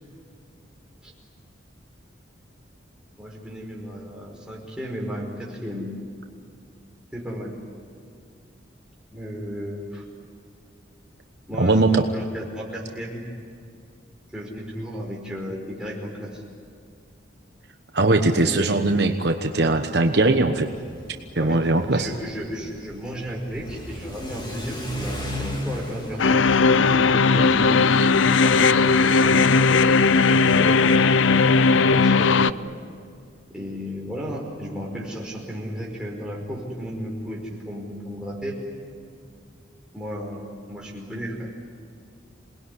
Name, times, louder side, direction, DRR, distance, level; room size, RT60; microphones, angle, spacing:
voice 1, 3.2-5.9 7.1-7.5 9.1-10.0 11.5-13.2 14.3-16.4 18.2-19.2 21.4-21.6 21.9-26.2 26.7-29.6 30.3-30.8 31.5-32.6 33.5-38.6 39.9-41.5, equal, 5° right, -3 dB, 5.2 m, -34 dB
voice 2, 11.6-12.0 17.9-20.7 21.3-22.1, right 2 dB, 55° right, 5 dB, 1.1 m, -20 dB
Car / Accelerating revving vroom, 20.7-30.1, equal, 25° left, 2.9 m, -36 dB
sound 1, 26.2-32.5, left 4 dB, 80° left, 0.6 m, -17 dB
28.0 x 20.0 x 9.9 m, 2.3 s
head